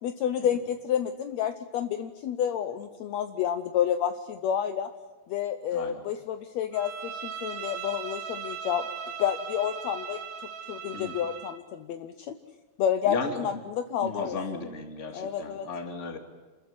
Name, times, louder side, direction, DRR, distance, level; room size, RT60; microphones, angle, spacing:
voice 1, 0.0-4.9 5.3-8.8 9.2-10.2 10.7-12.4 12.8-14.6 15.1-15.7, left 9 dB, 70° left, 9 dB, 2.0 m, -30 dB
Bowed string instrument, 6.7-11.6, right 7 dB, 65° right, 2.5 m, -38 dB
voice 2, 13.1-13.4 14.0-16.2, left 4 dB, 25° left, 5 dB, 2.3 m, -35 dB
27.5 x 14.0 x 9.6 m, 1.3 s
omnidirectional pair, 3.5 m